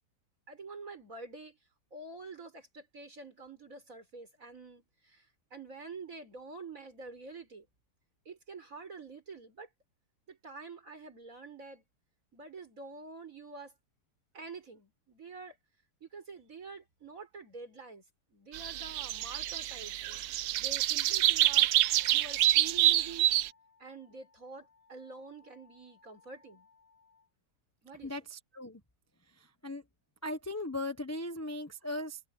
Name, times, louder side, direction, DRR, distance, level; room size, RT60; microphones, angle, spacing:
voice 1, 0.5-1.6 1.9-7.7 8.3-9.7 10.3-11.8 12.3-13.8 14.3-15.6 16.0-18.0 18.3-21.7 22.1-23.3 23.8-26.7 27.8-28.1, right 4 dB, 50° right, 5.5 m, -47 dB
sound 1, 18.5-23.5, right 14 dB, 75° right, 1.1 m, -27 dB
Wind instrument woodwind instrument, 21.7-27.3, left 5 dB, 55° left, 7.4 m, -63 dB
voice 2, 28.0-28.8 29.3-29.8 30.2-32.2, left 1 dB, 10° left, 1.0 m, -38 dB
omnidirectional pair, 1.8 m